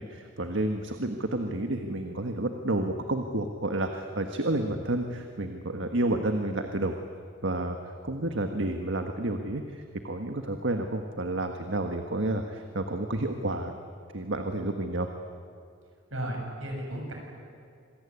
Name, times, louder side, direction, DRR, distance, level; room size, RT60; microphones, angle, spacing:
voice 1, 0.0-6.9 7.4-7.8 8.0-13.8 14.1-15.1, right 2 dB, 70° right, 5 dB, 1.5 m, -30 dB
voice 2, 16.1-17.1, right 1 dB, 85° right, 1 dB, 7.6 m, -34 dB
26.5 x 21.5 x 9.9 m, 2.4 s
head